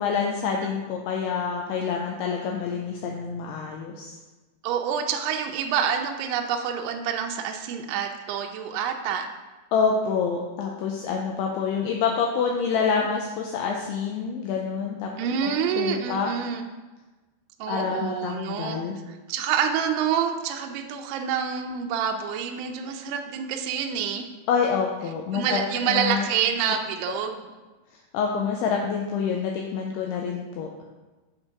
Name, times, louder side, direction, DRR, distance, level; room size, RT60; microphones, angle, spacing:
voice 1, 0.0-4.2 9.7-15.1 15.4-15.5 15.8-16.3 17.7-19.0 24.5-25.6 25.9-26.3 27.1-27.2 28.1-30.7, left 6 dB, 85° left, 0 dB, 2.4 m, -27 dB
voice 2, 4.6-9.3 15.2-16.7 17.6-18.8 19.1-24.3 25.3-27.4, right 8 dB, 85° right, 4 dB, 2.4 m, -27 dB
7.6 x 4.4 x 4.5 m, 1.2 s
omnidirectional pair, 5.1 m